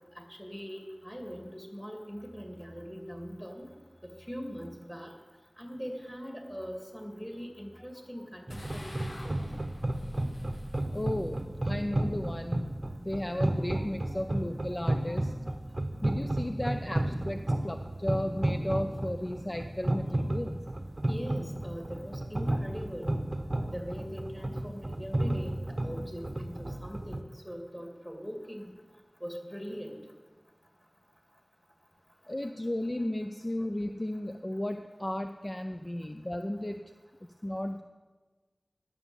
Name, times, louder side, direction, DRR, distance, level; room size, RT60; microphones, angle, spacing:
voice 1, 0.4-3.7 4.3-5.1 5.6-9.4 21.1-23.2 23.7-28.7 29.2-29.9, equal, 10° left, 2 dB, 2.5 m, -41 dB
sound 1, 8.5-13.9, left 1 dB, 80° left, 1.0 m, -49 dB
sound 2, 8.5-27.2, right 1 dB, 50° right, 0.7 m, -33 dB
voice 2, 10.9-12.7 13.0-15.6 16.0-20.6 32.3-36.8 37.4-37.8, left 1 dB, 35° left, 6 dB, 0.5 m, -34 dB
11.0 x 7.1 x 7.1 m, 1.3 s
wide cardioid pair, 40°, 0 cm